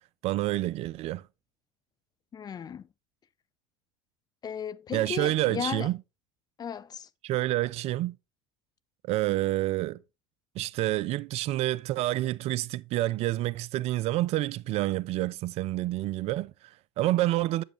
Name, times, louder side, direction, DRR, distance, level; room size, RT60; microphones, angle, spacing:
voice 1, 0.2-1.2 4.9-6.0 7.2-8.2 9.1-10.0 10.6-17.6, right 16 dB, 45° right, 0.3 m, -28 dB
voice 2, 2.3-2.9 4.4-5.9 6.6-7.1, left 7 dB, 25° left, 0.4 m, -35 dB
8.0 x 7.3 x 3.0 m
hypercardioid pair, 70°, 15 cm